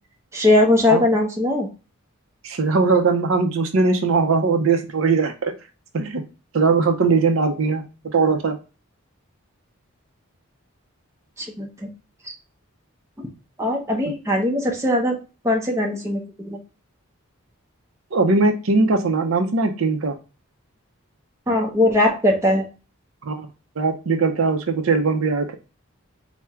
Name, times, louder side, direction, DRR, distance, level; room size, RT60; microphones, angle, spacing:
voice 1, 0.3-1.7 11.4-11.7 12.3-12.4 13.6-15.2 15.4-16.6 21.5-22.6, left 1 dB, 15° right, 0 dB, 0.7 m, -20 dB
voice 2, 2.4-5.5 5.9-6.2 6.5-8.6 18.1-20.1 23.2-23.5 23.8-25.5, right 4 dB, 70° right, 6 dB, 0.6 m, -20 dB
4.4 x 2.1 x 3.4 m, 0.32 s
head